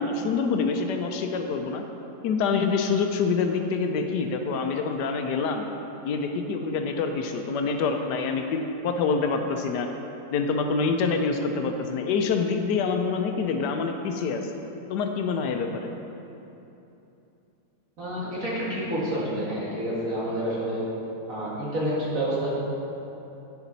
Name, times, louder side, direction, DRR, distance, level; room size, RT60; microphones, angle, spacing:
voice 1, 0.0-1.8 2.2-5.7 6.0-9.9 10.3-14.5 14.9-15.9, left 4 dB, 85° left, 5 dB, 1.3 m, -26 dB
voice 2, 18.0-20.8 21.3-22.5, right 1 dB, 55° right, -7 dB, 2.3 m, -28 dB
9.1 x 7.0 x 4.0 m, 2.9 s
omnidirectional pair, 1.8 m